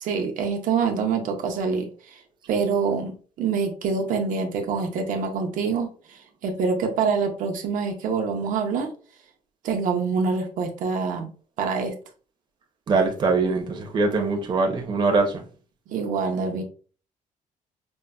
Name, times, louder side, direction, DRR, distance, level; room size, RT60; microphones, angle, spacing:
voice 1, 0.0-2.2 2.5-8.9 9.6-11.3 11.6-11.9 15.9-16.6, right 5 dB, 75° right, 0.6 m, -26 dB
voice 2, 12.9-15.4, right 3 dB, 35° right, 0.6 m, -22 dB
5.2 x 2.1 x 2.2 m
cardioid pair, 180°, 14 cm